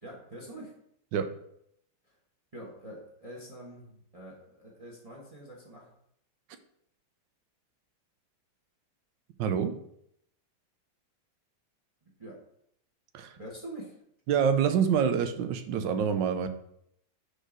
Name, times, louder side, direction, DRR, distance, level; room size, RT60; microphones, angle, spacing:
voice 1, 0.0-0.7 2.1-2.2 2.5-5.9 12.2-12.4 13.4-14.0, right 1 dB, 20° right, -2 dB, 1.2 m, -45 dB
voice 2, 9.4-9.8 13.1-13.4 14.3-16.5, right 7 dB, 85° right, 9 dB, 1.3 m, -26 dB
5.0 x 4.3 x 6.0 m, 0.73 s
omnidirectional pair, 1.9 m